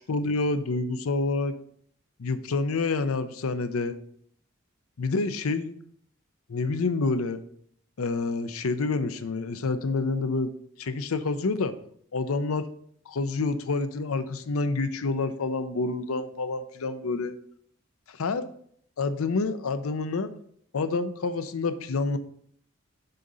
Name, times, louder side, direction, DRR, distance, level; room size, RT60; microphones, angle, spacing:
voice 1, 0.1-1.6 2.2-4.0 5.0-5.7 6.5-7.4 8.0-10.5 10.8-11.8 12.1-12.7 13.1-17.4 18.2-18.4 19.0-20.3 20.7-22.2, left 3 dB, 85° left, 11 dB, 0.6 m, -28 dB
6.5 x 3.8 x 5.4 m, 0.65 s
head